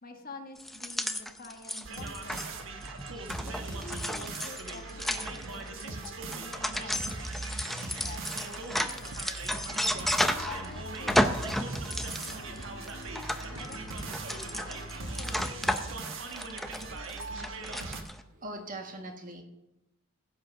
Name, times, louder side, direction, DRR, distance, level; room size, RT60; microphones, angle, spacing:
voice 1, 0.0-2.8 3.4-7.3 7.7-9.3 10.2-13.0 13.4-16.6, left 3 dB, 45° left, 4 dB, 1.3 m, -48 dB
sound 1, 0.6-10.7 10.9-18.2, equal, ahead, 0.6 m, -33 dB
sound 2, 1.8-18.0, right 3 dB, 70° right, 1.3 m, -39 dB
voice 2, 2.8-3.3 4.9-5.9 12.2-12.3 14.9-15.4 16.9-17.4 17.9-19.4, right 1 dB, 40° right, 4 dB, 1.6 m, -46 dB
sound 3, 9.9-15.5, left 2 dB, 80° left, 1.0 m, -47 dB
15.5 x 6.0 x 6.2 m, 0.88 s
head